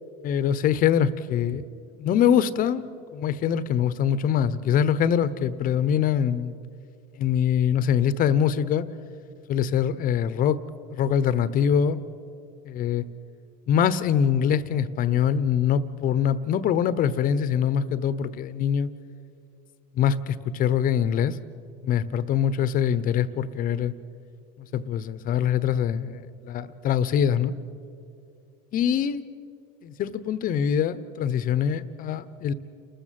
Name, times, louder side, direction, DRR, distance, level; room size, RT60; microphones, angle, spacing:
voice 1, 0.2-1.7 2.0-6.6 7.2-8.8 9.5-10.6 10.9-12.0 12.7-13.1 13.7-18.9 20.0-21.4 21.8-23.9 24.6-27.5 28.7-29.2 29.8-32.5, left 8 dB, 40° left, 15 dB, 1.0 m, -23 dB
29.5 x 14.0 x 7.7 m, 2.5 s
supercardioid pair, 120°, 21 cm